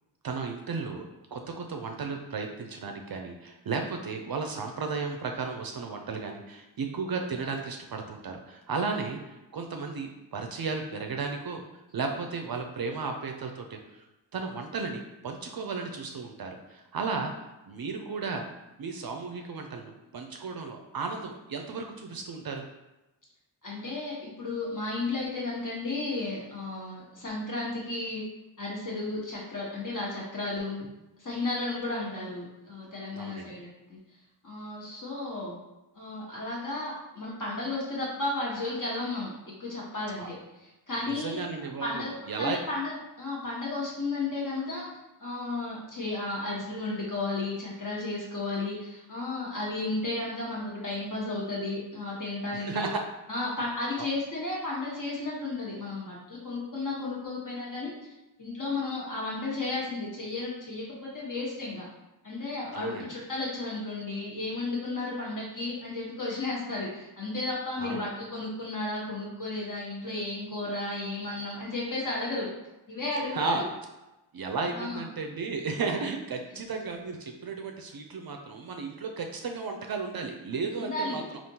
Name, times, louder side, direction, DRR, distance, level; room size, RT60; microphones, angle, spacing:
voice 1, 0.2-1.0 1.3-11.6 11.9-14.0 14.3-17.3 17.7-18.4 18.8-22.6 33.1-33.6 40.2-40.3 41.0-42.6 52.5-53.0 54.0-54.1 62.7-63.1 67.8-68.1 73.3-73.6 74.3-81.4, right 4 dB, 50° right, 3 dB, 0.5 m, -34 dB
voice 2, 23.6-28.2 28.6-30.9 31.2-34.0 34.4-35.6 35.9-39.3 39.6-40.3 40.6-41.4 41.8-42.1 42.4-44.9 45.2-52.9 53.3-57.9 58.4-61.9 62.2-72.5 72.9-73.6 74.7-75.0 80.7-81.2, left 2 dB, 40° left, -5 dB, 1.3 m, -33 dB
3.5 x 2.5 x 2.8 m, 0.98 s
cardioid pair, 55°, 47 cm